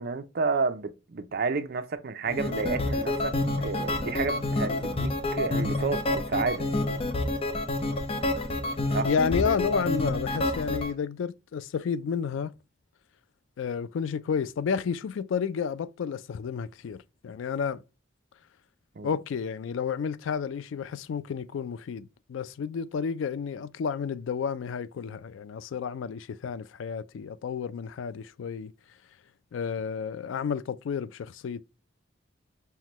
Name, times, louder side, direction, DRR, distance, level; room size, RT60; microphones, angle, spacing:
voice 1, 0.0-3.4 3.6-6.7 8.9-9.1 19.0-19.1, right 4 dB, 55° right, 0.5 m, -30 dB
sound 1, 2.3-10.9, left 2 dB, 30° left, 0.5 m, -28 dB
voice 2, 9.0-12.5 13.6-17.8 19.0-28.7 29.5-31.6, left 6 dB, 80° left, 0.3 m, -31 dB
5.6 x 2.2 x 3.0 m
head